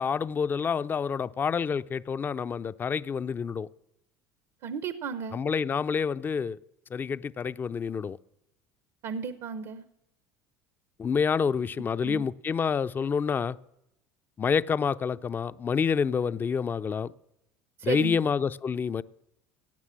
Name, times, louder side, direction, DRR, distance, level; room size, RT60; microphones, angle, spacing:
voice 1, 0.0-3.7 5.3-6.6 6.9-8.2 11.0-13.6 14.4-17.1 17.8-19.0, left 6 dB, 25° left, 0.4 m, -28 dB
voice 2, 4.6-5.4 9.0-9.8 12.0-12.2 17.8-18.2, right 6 dB, 65° right, 0.9 m, -34 dB
18.0 x 9.2 x 7.5 m
supercardioid pair, 105°, 7 cm